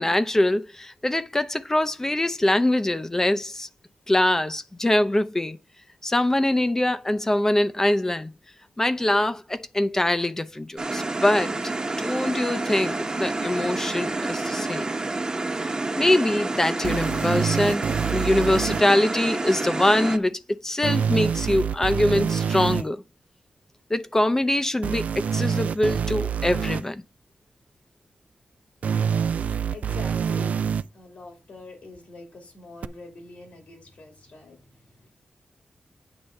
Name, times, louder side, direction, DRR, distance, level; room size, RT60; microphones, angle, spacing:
voice 1, 0.0-3.7 4.1-5.6 6.0-8.3 8.8-11.6 12.0-14.9 16.0-23.0 23.9-27.0, left 1 dB, 20° left, 0.6 m, -23 dB
sound 1, 10.8-20.2, right 2 dB, 30° right, 1.0 m, -29 dB
sound 2, 16.8-18.8 20.8-22.8 24.8-26.8 28.8-30.8 32.8-32.9, right 7 dB, 85° right, 0.3 m, -26 dB
voice 2, 29.5-35.1, left 3 dB, 75° left, 2.9 m, -45 dB
8.9 x 3.4 x 6.4 m
wide cardioid pair, 95°, 2 cm